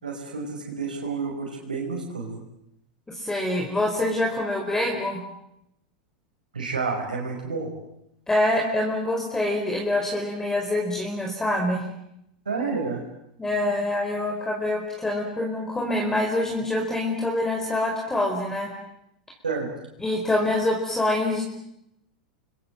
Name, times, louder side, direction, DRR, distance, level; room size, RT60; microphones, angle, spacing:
voice 1, 0.0-2.4 6.5-7.7 12.5-13.0 19.4-19.7, right 4 dB, 90° right, -1 dB, 5.7 m, -30 dB
voice 2, 3.1-5.2 8.3-11.8 13.4-18.7 20.0-21.4, left 1 dB, 10° left, 1 dB, 4.6 m, -25 dB
29.0 x 22.5 x 7.8 m, 0.80 s
hypercardioid pair, 95°, 4 cm